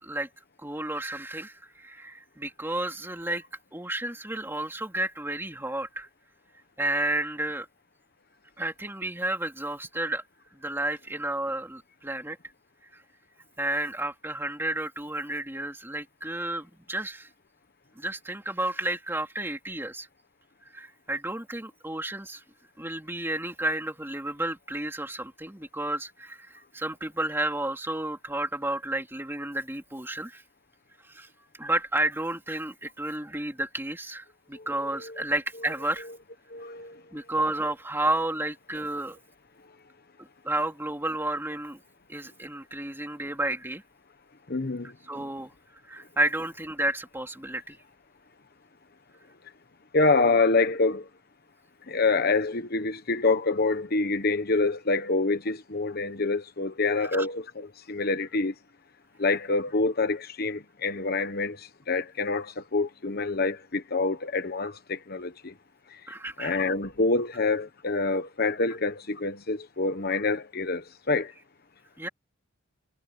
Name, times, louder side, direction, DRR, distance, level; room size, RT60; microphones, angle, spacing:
voice 1, 0.6-3.4 3.7-6.1 6.8-7.7 8.6-10.2 10.5-12.5 12.9-13.0 13.6-17.3 17.9-20.1 20.7-22.4 22.8-30.4 31.0-31.3 31.6-36.1 37.1-39.2 40.4-41.8 42.1-43.8 45.1-45.5 45.8-47.8 57.1-57.3 66.1-66.6 72.0-72.1, right 1 dB, 10° right, 3.2 m, -31 dB
voice 2, 36.5-37.0 44.5-44.9 49.9-51.1 51.9-58.5 59.2-65.5 65.9-66.0 66.4-71.3, left 3 dB, 45° left, 1.1 m, -26 dB
head